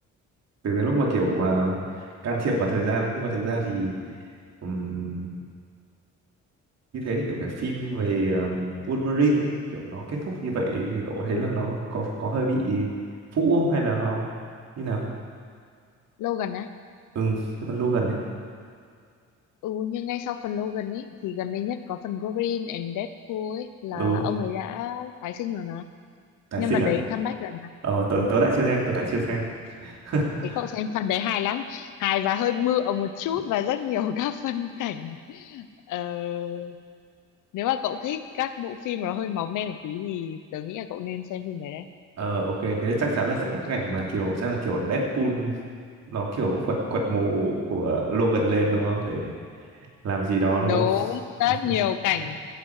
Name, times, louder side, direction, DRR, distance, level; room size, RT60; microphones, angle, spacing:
voice 1, 0.6-1.8 2.2-3.9 4.6-5.3 6.9-12.9 13.3-14.3 14.8-15.0 17.1-18.2 23.9-24.3 26.5-26.9 27.8-29.5 29.8-30.6 42.2-45.5 46.1-49.3 50.0-50.8 51.6-51.7, right 2 dB, 60° right, -2 dB, 2.9 m, -25 dB
voice 2, 16.2-16.7 19.6-25.8 26.6-27.7 28.1-28.3 30.6-36.8 37.5-41.9 50.6-52.4, left 10 dB, 85° left, 11 dB, 0.8 m, -29 dB
16.0 x 9.2 x 4.9 m, 2.1 s
cardioid pair, 90°, 30 cm